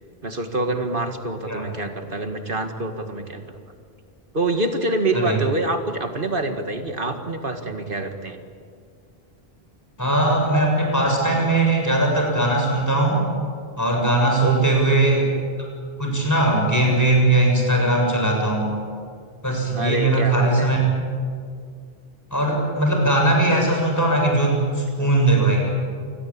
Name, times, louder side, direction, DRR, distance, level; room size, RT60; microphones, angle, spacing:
voice 1, 0.2-3.5 4.3-8.4 14.4-14.8 19.7-20.7, right 2 dB, 60° right, 6 dB, 2.2 m, -26 dB
voice 2, 5.1-5.4 10.0-13.2 13.8-15.3 16.0-18.7 19.4-20.8 22.3-25.7, right 2 dB, 15° left, 0 dB, 7.2 m, -19 dB
28.5 x 21.5 x 8.8 m, 2.1 s
omnidirectional pair, 1.0 m